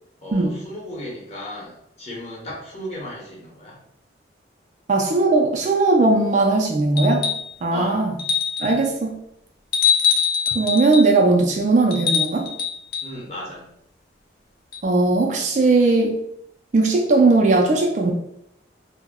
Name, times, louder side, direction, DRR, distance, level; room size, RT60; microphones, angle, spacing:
voice 1, 0.2-3.8 7.7-8.0 13.0-13.7, equal, 35° left, -4 dB, 0.8 m, -35 dB
voice 2, 4.9-7.3 7.6-8.1 8.6-9.1 10.5-12.5 14.8-16.1 16.7-18.1, right 3 dB, 40° right, 1 dB, 0.3 m, -18 dB
sound 1, 7.0-7.5 8.2-8.8 9.7-11.1 11.9-13.1 14.7-14.8, left 7 dB, 55° left, 0.4 m, -23 dB
2.2 x 2.0 x 3.4 m, 0.74 s
head